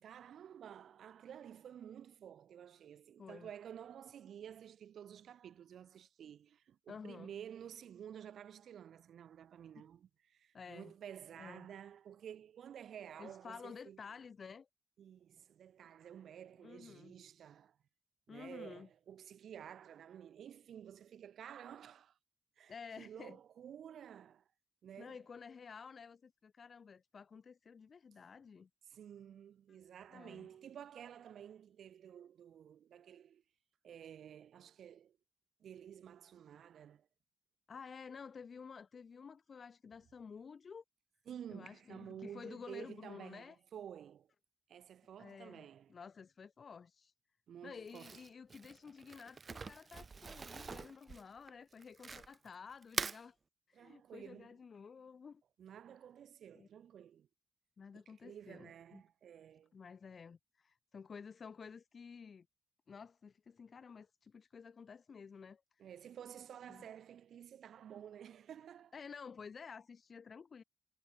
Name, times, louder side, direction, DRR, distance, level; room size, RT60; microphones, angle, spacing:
voice 1, 0.0-14.0 15.0-17.8 18.3-22.2 22.6-24.4 24.8-25.2 28.9-33.4 33.8-35.2 35.6-37.1 41.3-44.3 44.7-46.0 47.5-48.2 53.7-54.6 55.6-57.3 57.9-59.7 65.8-68.9, right 9 dB, 75° right, 2.1 m, -52 dB
voice 2, 6.9-7.3 10.5-10.9 11.4-11.7 13.2-14.7 16.6-17.1 18.3-18.9 22.7-23.4 25.0-28.7 29.7-29.8 30.1-30.5 37.7-40.8 41.5-43.6 45.2-47.1 47.6-53.4 53.7-55.4 56.5-56.7 57.8-59.0 59.7-62.5 62.9-65.6 66.7-66.8 68.9-70.6, left 6 dB, 40° left, 2.3 m, -52 dB
Crumpling crinkling, 47.9-52.5 52.8-53.2, right 4 dB, 35° right, 0.3 m, -44 dB
wide cardioid pair, 155°, 0 cm